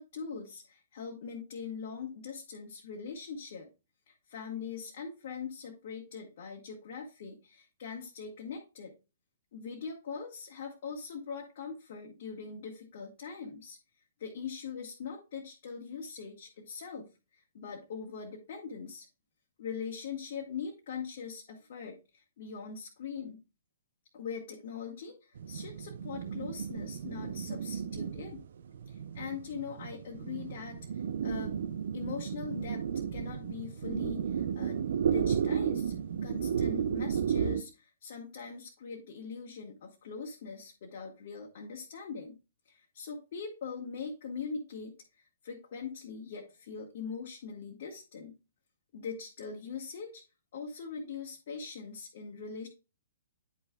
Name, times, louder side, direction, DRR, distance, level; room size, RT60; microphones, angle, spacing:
voice 1, 0.0-3.7 4.1-9.0 9.5-13.8 14.2-19.1 19.6-23.4 24.1-28.4 28.9-31.6 31.9-32.8 33.1-36.0 36.2-42.4 42.6-48.4 48.9-50.2 50.5-52.7, left 6 dB, 50° left, 1.3 m, -42 dB
sound 1, 25.4-37.6, right 7 dB, 60° right, 0.5 m, -33 dB
9.9 x 5.6 x 2.3 m
figure-of-eight pair, 120°, 0 cm